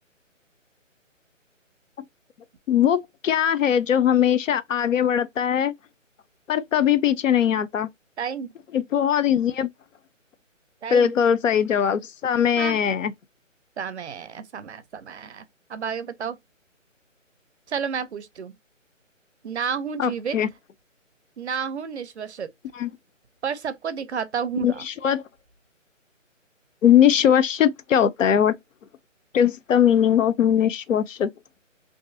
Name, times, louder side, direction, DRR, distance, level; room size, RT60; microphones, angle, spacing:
voice 1, 2.7-5.7 6.5-7.9 8.7-9.7 10.9-13.1 20.0-20.5 22.8-22.9 24.6-25.2 26.8-28.6 29.3-31.3, left 9 dB, 75° left, 0.5 m, -20 dB
voice 2, 8.2-8.5 10.8-11.1 12.6-12.8 13.8-16.4 17.7-18.6 19.4-20.4 21.4-22.5 23.4-24.8, right 7 dB, 60° right, 0.5 m, -31 dB
2.6 x 2.4 x 2.5 m
hypercardioid pair, 170°, 39 cm